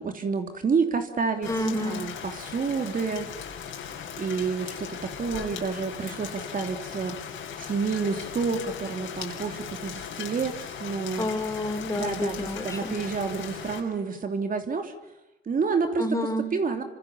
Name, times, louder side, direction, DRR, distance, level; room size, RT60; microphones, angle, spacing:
voice 1, 0.0-1.5 1.8-3.3 4.2-7.2 7.6-11.3 11.9-14.9 15.5-16.0 16.5-16.8, right 5 dB, 45° right, 6 dB, 3.0 m, -29 dB
Rain, 1.4-13.8, left 8 dB, 80° left, 6.7 m, -38 dB
voice 2, 1.4-2.0 11.2-13.0 16.0-16.5, left 1 dB, 15° left, 4 dB, 5.5 m, -29 dB
28.0 x 25.5 x 6.9 m, 0.92 s
cardioid pair, 90°, 20 cm